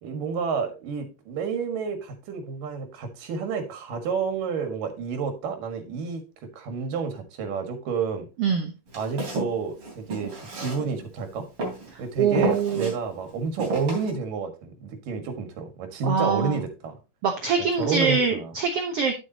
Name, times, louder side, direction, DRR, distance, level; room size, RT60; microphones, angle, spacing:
voice 1, 0.0-6.2 6.6-8.3 8.9-11.5 12.0-16.9 17.8-18.5, right 5 dB, 80° right, 6 dB, 3.3 m, -30 dB
voice 2, 8.4-8.7 11.9-12.9 16.0-16.6 17.2-19.1, right 6 dB, 65° right, 5 dB, 1.6 m, -24 dB
Walk footsteps, 8.9-11.2 11.6-11.9 12.3-12.9 13.6-14.1, right 1 dB, 40° right, 3.8 m, -31 dB
10.0 x 8.4 x 2.8 m, 0.28 s
omnidirectional pair, 3.8 m